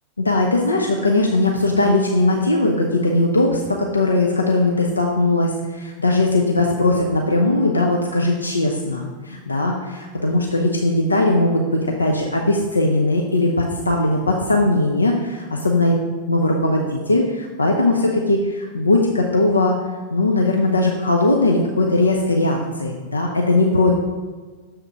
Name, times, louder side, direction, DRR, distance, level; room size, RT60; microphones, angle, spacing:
voice 1, 0.2-16.0 16.3-19.8 20.1-23.9, left 2 dB, 80° left, 0 dB, 0.6 m, -19 dB
7.0 x 3.6 x 5.5 m, 1.4 s
figure-of-eight pair, 90°, 0 cm